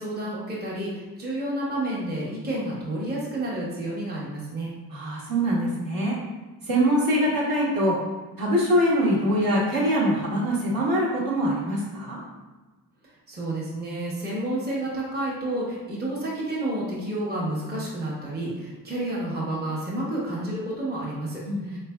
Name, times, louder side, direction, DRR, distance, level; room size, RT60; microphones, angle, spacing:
voice 1, 0.0-4.7 13.3-21.8, right 1 dB, 25° right, -6 dB, 0.8 m, -30 dB
voice 2, 4.9-6.2 6.6-8.0 8.4-12.2 21.4-21.8, equal, 60° right, -5 dB, 1.1 m, -23 dB
3.5 x 3.2 x 2.2 m, 1.2 s
cardioid pair, 95°, 40 cm